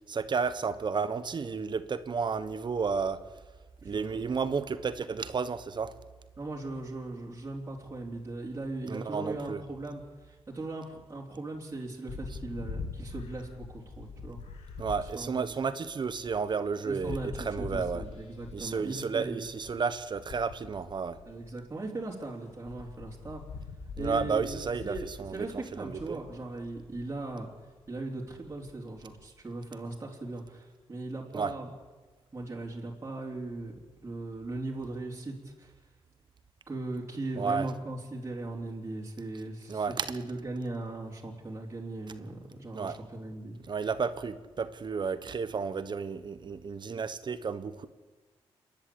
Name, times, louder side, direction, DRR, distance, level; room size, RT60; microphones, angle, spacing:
voice 1, 0.1-3.2 3.8-5.9 8.9-9.6 14.8-18.0 18.5-21.2 24.0-25.5 25.8-26.2 31.3-31.5 37.4-37.7 39.7-40.1 42.7-43.0 43.7-47.9, right 5 dB, 45° right, 12 dB, 1.3 m, -32 dB
voice 2, 3.8-4.2 6.4-14.4 15.0-15.7 16.8-19.5 21.3-23.4 24.0-27.5 27.9-31.7 32.3-35.7 36.7-43.6, right 2 dB, 25° right, -4 dB, 3.6 m, -39 dB
sound 1, 12.1-22.1 22.5-29.2, left 4 dB, 85° left, 1.8 m, -44 dB
28.0 x 10.5 x 8.8 m, 1.3 s
cardioid pair, 80°, 10 cm